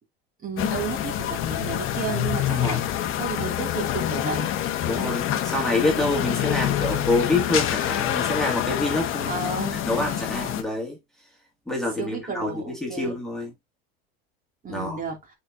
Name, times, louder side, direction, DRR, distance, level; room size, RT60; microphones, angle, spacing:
voice 1, 0.4-4.5 5.0-5.4 9.3-9.8 12.0-13.2 14.6-15.2, right 4 dB, 25° right, 2.7 m, -33 dB
sound 1, 0.6-10.6, left 11 dB, 45° left, 1.3 m, -26 dB
voice 2, 2.5-2.8 4.9-9.3 9.8-11.0 11.7-13.5 14.7-15.0, left 2 dB, ahead, 2.4 m, -27 dB
7.6 x 4.5 x 2.7 m
hypercardioid pair, 105°, 30 cm